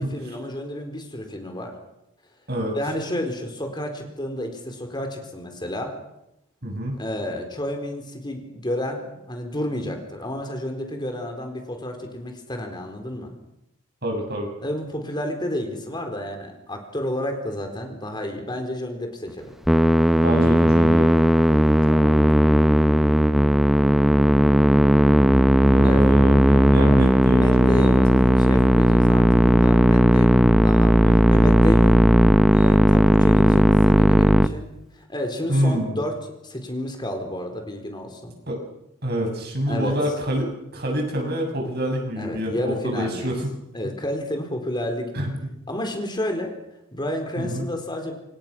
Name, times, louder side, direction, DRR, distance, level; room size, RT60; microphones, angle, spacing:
voice 1, 0.0-1.7 2.7-5.9 7.0-13.3 14.6-19.5 21.9-22.3 25.8-26.0 27.3-31.0 31.3-32.1 32.5-34.7 34.9-38.4 39.7-40.0 42.2-43.3 43.7-45.3 45.7-46.5 46.9-48.1, left 1 dB, 20° left, 4 dB, 4.3 m, -30 dB
voice 2, 6.6-7.0 14.0-14.5 20.2-21.1 25.7-27.9 30.3-30.7 31.0-31.5 35.5-36.0 38.5-38.6 39.0-43.5 45.1-45.3 47.4-47.6, equal, 50° right, 2 dB, 7.5 m, -27 dB
Musical instrument, 19.7-34.5, equal, ahead, 0.9 m, -16 dB
28.0 x 28.0 x 6.3 m, 0.86 s
head